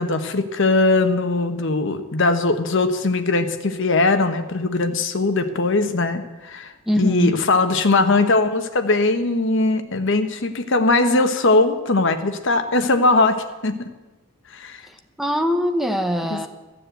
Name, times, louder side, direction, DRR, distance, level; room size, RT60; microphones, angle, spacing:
voice 1, 0.0-13.9 14.5-14.8 16.3-16.5, left 3 dB, 60° left, 8 dB, 1.1 m, -20 dB
voice 2, 6.9-7.3 15.2-16.5, equal, ahead, 5 dB, 1.0 m, -21 dB
14.5 x 7.5 x 8.0 m, 1.1 s
head